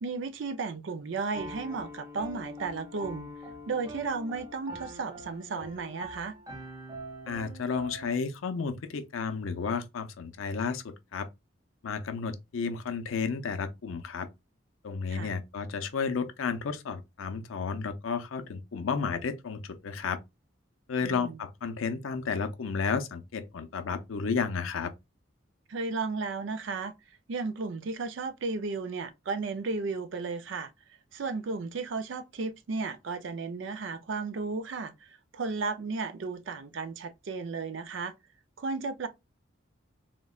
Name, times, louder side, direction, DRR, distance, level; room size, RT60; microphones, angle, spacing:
voice 1, 0.0-3.3 3.7-6.3 15.1-15.3 21.0-21.4 25.7-26.9 27.3-30.7 31.1-38.1 38.6-39.1, right 4 dB, 70° right, 0.4 m, -34 dB
Piano, 1.3-8.2, equal, 15° right, 0.6 m, -43 dB
voice 2, 7.3-11.3 11.8-14.3 14.8-20.2 20.9-24.9, left 5 dB, 85° left, 0.5 m, -32 dB
3.8 x 2.1 x 2.3 m
head